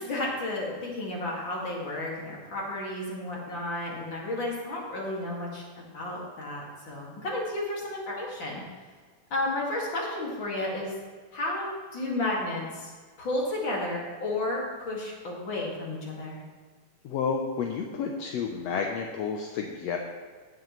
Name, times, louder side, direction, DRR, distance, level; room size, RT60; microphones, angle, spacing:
voice 1, 0.0-8.6 9.3-10.9 11.3-12.9 13.2-16.4, left 2 dB, 40° left, -3 dB, 2.5 m, -32 dB
voice 2, 17.0-20.0, left 6 dB, 75° left, 2 dB, 1.5 m, -30 dB
17.0 x 7.5 x 3.1 m, 1.5 s
omnidirectional pair, 3.7 m